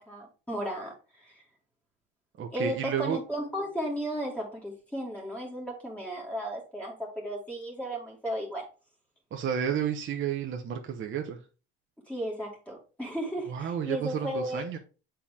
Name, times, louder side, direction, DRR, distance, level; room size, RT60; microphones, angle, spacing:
voice 1, 0.0-1.4 2.5-8.6 12.1-14.8, equal, 5° left, 2.2 m, -35 dB
voice 2, 2.4-3.2 9.3-11.4 13.5-14.8, right 8 dB, 35° right, 1.0 m, -31 dB
6.8 x 4.5 x 3.7 m
cardioid pair, 110°, 33 cm